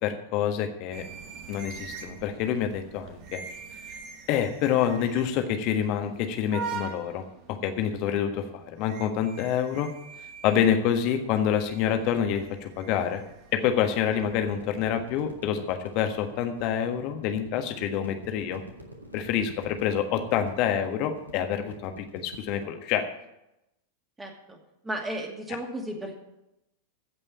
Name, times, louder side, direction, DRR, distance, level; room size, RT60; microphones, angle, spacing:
voice 1, 0.0-1.0 1.5-3.4 4.3-9.9 10.4-13.2 13.5-18.6 19.1-23.1, left 9 dB, 40° left, 6 dB, 1.5 m, -27 dB
sound 1, 0.9-15.8, right 6 dB, 40° right, 1.7 m, -44 dB
sound 2, 14.5-22.6, equal, 80° right, 2.0 m, -48 dB
voice 2, 24.2-24.6 24.8-26.1, right 1 dB, 15° right, 2 dB, 2.5 m, -34 dB
15.5 x 5.5 x 8.6 m, 0.88 s
figure-of-eight pair, 90°, 0 cm